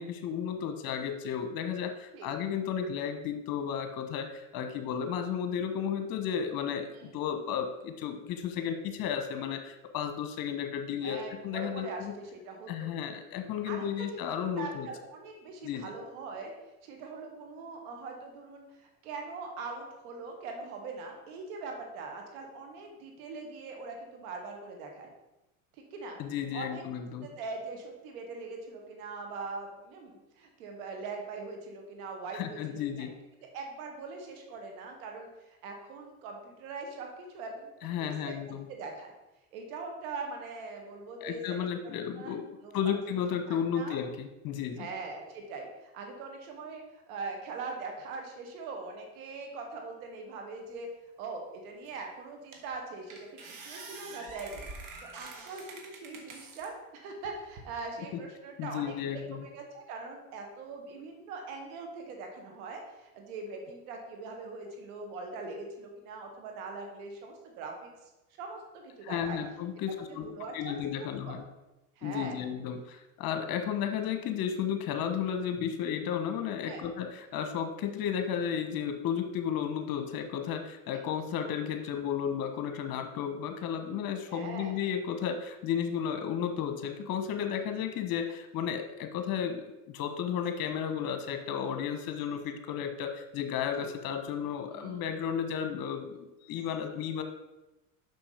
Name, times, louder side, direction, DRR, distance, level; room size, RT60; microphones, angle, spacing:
voice 1, 0.0-11.2 11.4-12.1 12.7-14.9 15.6-15.9 26.2-27.3 32.3-33.1 37.8-38.7 41.2-42.4 42.7-44.9 58.6-59.4 69.0-70.3 70.5-71.4 72.0-97.2, left 8 dB, 55° left, 7 dB, 1.3 m, -33 dB
voice 2, 6.9-7.2 11.0-12.9 13.7-16.5 16.8-25.1 25.7-26.2 26.5-26.9 27.2-33.1 33.5-37.7 38.2-39.1 39.5-41.7 42.1-42.7 43.3-44.0 44.8-50.9 51.2-54.7 55.0-68.1 68.4-69.4 69.9-71.3 72.0-72.4 76.7-76.8 84.3-84.8 87.6-87.7 93.8-93.9 94.7-95.1, right 3 dB, 75° right, 2 dB, 2.1 m, -42 dB
sound 1, 51.9-52.0 52.5-52.8 53.1-56.7 57.2-57.9, right 3 dB, 50° right, 1.7 m, -46 dB
6.2 x 6.0 x 5.0 m, 0.98 s
supercardioid pair, 95°, 42 cm